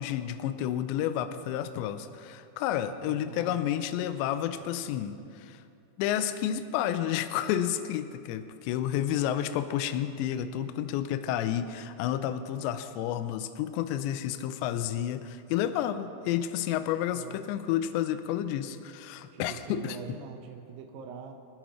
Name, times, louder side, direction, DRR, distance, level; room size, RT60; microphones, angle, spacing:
voice 1, 0.0-5.6 6.0-20.0, left 11 dB, 85° left, 10 dB, 2.7 m, -30 dB
voice 2, 3.0-3.6 17.1-17.4 19.3-21.3, right 7 dB, 75° right, 3 dB, 2.1 m, -43 dB
27.5 x 10.5 x 3.1 m, 2.5 s
omnidirectional pair, 5.6 m